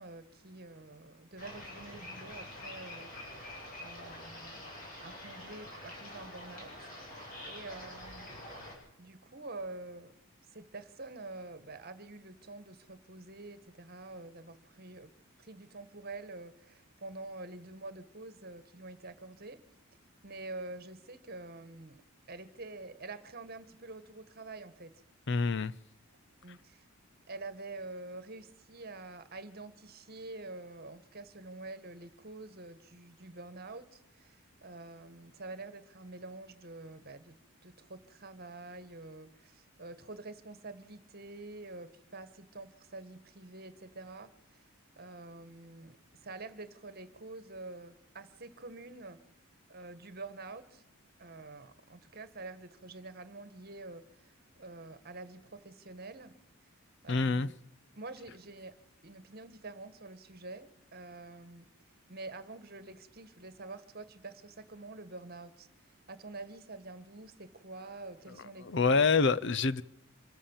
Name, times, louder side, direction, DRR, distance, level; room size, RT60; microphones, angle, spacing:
voice 1, 0.0-3.5 3.8-4.7 5.0-8.4 9.0-10.2 10.5-15.1 15.4-19.6 20.2-22.0 22.3-24.9 26.4-26.8 27.3-37.4 37.6-44.7 45.0-49.2 49.7-50.8 51.2-56.3 56.6-56.7 57.0-57.5 57.9-58.7 59.0-61.7 62.1-65.7 66.1-69.2, right 2 dB, 45° right, 1.6 m, -47 dB
sound 1, 1.4-8.7, left 1 dB, 40° left, 8.0 m, -46 dB
voice 2, 25.3-25.7 57.1-57.5 68.6-69.8, left 4 dB, 55° left, 0.6 m, -26 dB
25.5 x 14.0 x 7.2 m
head